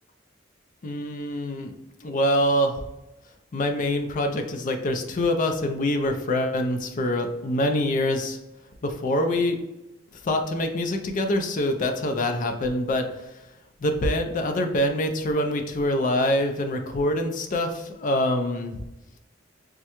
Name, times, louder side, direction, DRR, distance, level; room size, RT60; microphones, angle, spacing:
voice 1, 0.8-1.7 2.0-2.8 3.5-8.4 8.8-9.6 10.2-13.2 13.8-18.8, left 1 dB, 40° left, 6 dB, 0.4 m, -25 dB
3.5 x 2.1 x 2.9 m, 0.94 s
head